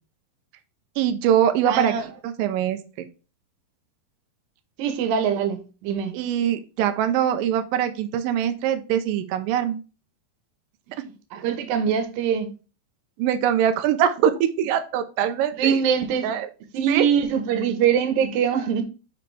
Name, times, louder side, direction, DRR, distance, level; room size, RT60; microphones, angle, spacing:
voice 1, 1.0-1.9 2.2-2.8 6.1-9.8 13.2-15.8 16.2-16.5 16.9-17.0, right 9 dB, 90° right, 2.0 m, -23 dB
voice 2, 1.7-2.1 4.8-6.1 10.9-12.5 15.6-16.3 16.7-18.8, right 7 dB, 70° right, 2.5 m, -23 dB
6.8 x 5.2 x 3.2 m
omnidirectional pair, 4.6 m